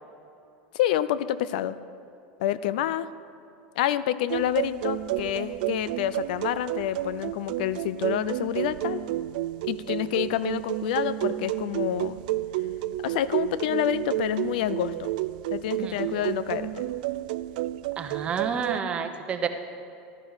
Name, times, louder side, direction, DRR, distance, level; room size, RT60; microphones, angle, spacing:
voice 1, 0.7-1.8 2.4-3.1 3.8-9.0 9.7-12.2 13.0-15.1 15.5-16.8, left 12 dB, 80° left, 16 dB, 0.5 m, -28 dB
sound 1, 4.3-18.8, right 15 dB, 75° right, 0.3 m, -31 dB
voice 2, 18.0-19.5, right 6 dB, 25° right, 6 dB, 0.9 m, -29 dB
15.0 x 12.0 x 4.1 m, 2.6 s
supercardioid pair, 150°, 5 cm